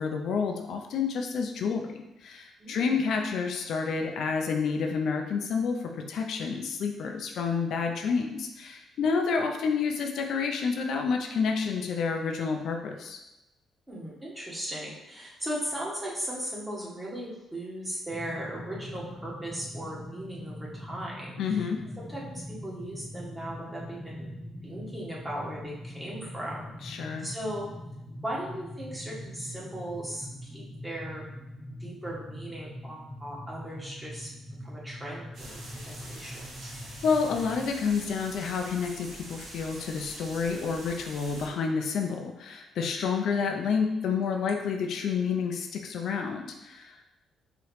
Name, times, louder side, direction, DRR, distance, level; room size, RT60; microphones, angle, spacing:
voice 1, 0.0-13.2 21.4-21.8 26.8-27.3 37.0-47.0, left 5 dB, 70° left, 3 dB, 0.4 m, -29 dB
voice 2, 2.6-3.0 13.9-21.7 22.0-24.3 24.6-26.6 27.2-27.7 28.2-31.2 31.8-34.3 34.6-36.4 43.1-43.5, right 1 dB, 15° right, -5 dB, 1.4 m, -38 dB
sound 1, 18.1-37.7, equal, 15° left, 0.5 m, -42 dB
sound 2, 35.3-41.5, right 1 dB, 75° right, 1.5 m, -45 dB
4.8 x 3.0 x 3.2 m, 0.94 s
cardioid pair, 90°, 0 cm